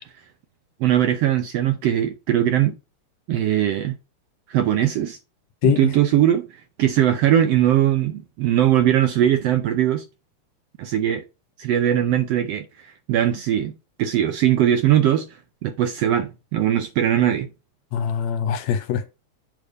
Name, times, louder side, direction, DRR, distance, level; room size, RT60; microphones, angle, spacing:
voice 1, 0.8-2.8 3.3-3.9 4.5-5.2 5.6-6.5 6.8-10.0 10.8-11.2 11.6-13.7 14.0-15.3 15.6-17.5, right 11 dB, 75° right, 1.5 m, -20 dB
voice 2, 5.6-5.9 17.9-19.1, left 9 dB, 75° left, 2.0 m, -23 dB
8.7 x 3.4 x 5.2 m
omnidirectional pair, 3.4 m